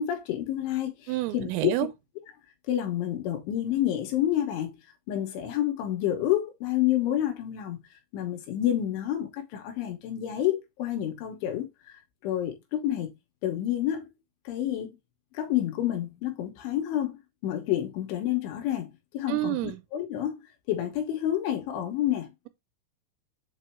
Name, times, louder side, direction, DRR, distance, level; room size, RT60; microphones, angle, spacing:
voice 1, 0.0-1.7 2.7-4.8 5.1-7.8 8.1-13.1 13.4-14.1 14.5-14.9 15.3-19.6 19.9-20.4 20.7-22.3, left 12 dB, 75° left, 3.3 m, -29 dB
voice 2, 1.1-1.9 19.3-19.8, right 16 dB, 85° right, 3.4 m, -28 dB
7.8 x 2.7 x 4.4 m
omnidirectional pair, 5.8 m